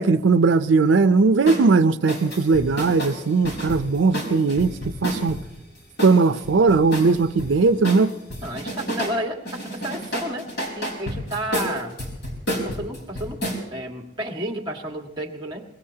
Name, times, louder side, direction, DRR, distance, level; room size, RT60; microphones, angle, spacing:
voice 1, 0.0-5.4 6.0-8.1, right 4 dB, 85° right, 0.5 m, -19 dB
sound 1, 1.5-1.7 2.1-5.4 6.0-7.5 7.8-9.2 9.4-13.6, equal, 60° left, 4.4 m, -30 dB
voice 2, 8.4-10.5 10.7-12.0 12.6-13.4 13.7-15.6, right 1 dB, 25° right, 1.7 m, -31 dB
23.0 x 21.5 x 2.8 m
head